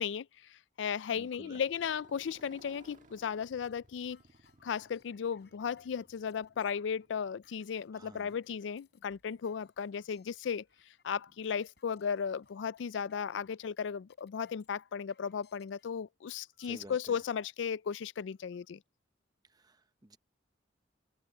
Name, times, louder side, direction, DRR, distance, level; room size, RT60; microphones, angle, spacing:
voice 1, 0.0-4.2 4.6-10.6 11.0-18.8, left 7 dB, 85° left, 0.4 m, -36 dB
Motorcycle, 0.9-8.9, right 2 dB, 45° right, 1.6 m, -62 dB
voice 2, 1.1-1.6 7.9-8.4 16.6-17.2 19.5-20.2, right 1 dB, 20° right, 0.9 m, -52 dB
sound 1, 3.0-15.8 16.5-17.1 17.6-17.7 18.0-18.7, left 5 dB, 65° left, 5.0 m, -69 dB
open air
head